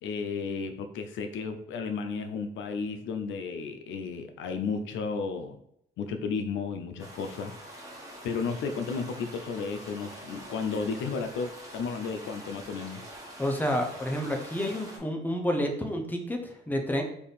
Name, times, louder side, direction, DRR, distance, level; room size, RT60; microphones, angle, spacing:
voice 1, 0.0-5.6 6.0-7.8 8.2-13.1, left 5 dB, 75° left, 7 dB, 0.5 m, -33 dB
sound 1, 7.0-15.0, right 1 dB, 15° right, 1.3 m, -45 dB
voice 2, 13.4-17.0, equal, 10° left, 3 dB, 0.7 m, -29 dB
3.4 x 2.6 x 4.0 m, 0.73 s
cardioid pair, 90°, 20 cm